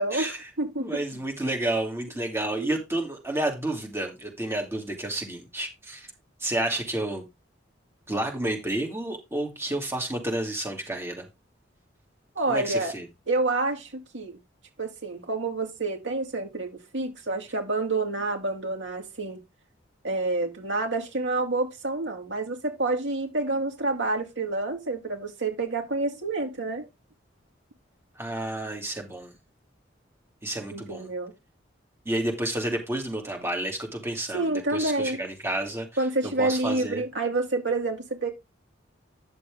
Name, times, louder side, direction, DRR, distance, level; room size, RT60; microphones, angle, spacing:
voice 1, 0.0-0.8 2.5-2.8 12.3-13.0 13.3-14.4 14.8-19.4 20.0-26.9 30.7-31.3 34.3-35.2 36.0-38.3, right 2 dB, 75° right, 2.8 m, -28 dB
voice 2, 0.8-6.1 6.4-7.2 8.1-11.3 12.5-13.1 28.2-29.3 30.4-31.1 32.0-35.9 36.4-37.0, right 1 dB, 15° right, 2.8 m, -30 dB
10.0 x 6.8 x 3.6 m
head